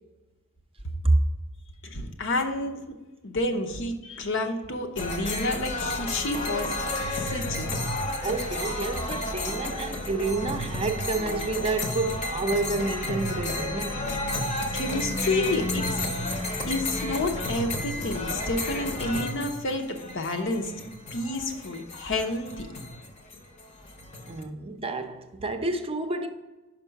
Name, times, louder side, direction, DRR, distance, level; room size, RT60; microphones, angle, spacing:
voice 1, 1.8-2.8 3.2-6.8 7.1-7.8 14.7-16.0 16.7-20.7 21.1-22.7, left 2 dB, 65° left, 0.8 m, -29 dB
sound 1, 5.0-24.4, left 1 dB, 35° left, 0.8 m, -32 dB
voice 2, 8.2-14.1 24.2-26.3, right 2 dB, 25° right, 0.6 m, -29 dB
5.4 x 5.2 x 5.8 m
head